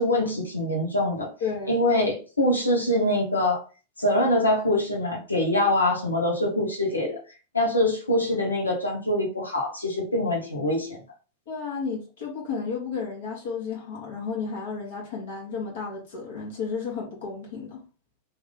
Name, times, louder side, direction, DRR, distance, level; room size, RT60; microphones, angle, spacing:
voice 1, 0.0-1.3 1.7-3.6 4.0-7.2 7.5-11.0, left 1 dB, 80° left, 1.1 m, -24 dB
voice 2, 1.4-1.8 11.5-17.8, left 5 dB, 60° left, 1.5 m, -32 dB
3.1 x 2.7 x 3.9 m
figure-of-eight pair, 90°, 0 cm